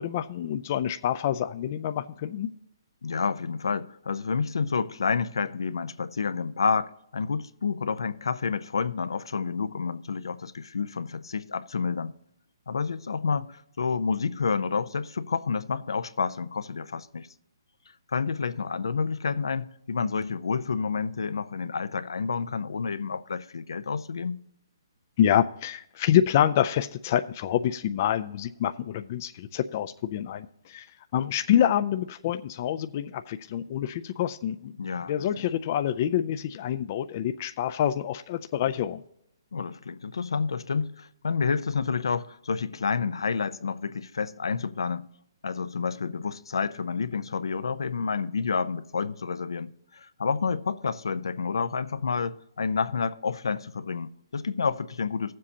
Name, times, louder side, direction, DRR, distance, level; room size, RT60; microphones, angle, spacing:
voice 1, 0.0-2.5 25.2-30.9 31.1-34.7 35.1-39.0, left 10 dB, 35° left, 0.3 m, -27 dB
voice 2, 3.0-12.1 12.7-17.3 18.1-24.4 34.8-35.3 39.5-45.1 45.4-55.3, left 5 dB, 90° left, 0.6 m, -29 dB
15.5 x 7.5 x 2.8 m
hypercardioid pair, 165°, 2 cm